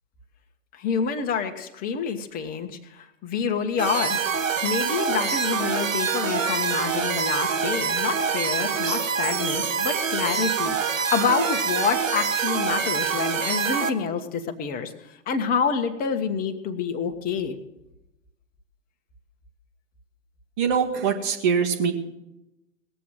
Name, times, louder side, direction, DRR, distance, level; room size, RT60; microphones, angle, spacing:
voice 1, 0.7-4.3 4.6-14.9 15.3-17.6, left 6 dB, 20° left, 7 dB, 1.2 m, -27 dB
sound 1, 3.8-13.9, right 6 dB, 80° right, 1.2 m, -25 dB
voice 2, 20.6-21.9, right 6 dB, 40° right, 4 dB, 2.0 m, -23 dB
19.0 x 7.7 x 7.4 m, 0.93 s
figure-of-eight pair, 120°, 39 cm